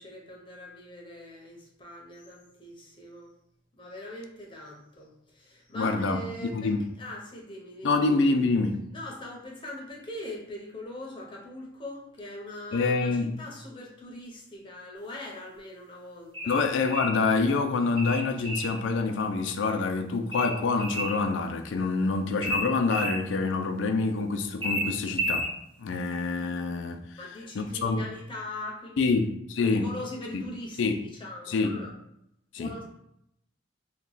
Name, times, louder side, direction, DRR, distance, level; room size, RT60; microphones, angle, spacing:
voice 1, 0.0-3.3 3.8-8.0 8.9-16.6 27.2-29.2 29.6-32.0 32.6-32.8, left 1 dB, 25° left, 0.7 m, -41 dB
voice 2, 5.7-6.9 7.8-8.8 12.7-13.4 16.5-25.5 25.8-27.2 27.6-28.1 29.0-29.9 30.3-30.4 30.8-31.0 31.5-31.8 32.5-32.7, left 3 dB, 80° left, 0.4 m, -26 dB
sound 1, 16.3-17.2 18.0-18.8 20.3-21.2 22.4-23.2 24.6-25.5, equal, 25° right, 1.1 m, -31 dB
2.9 x 2.2 x 3.9 m
head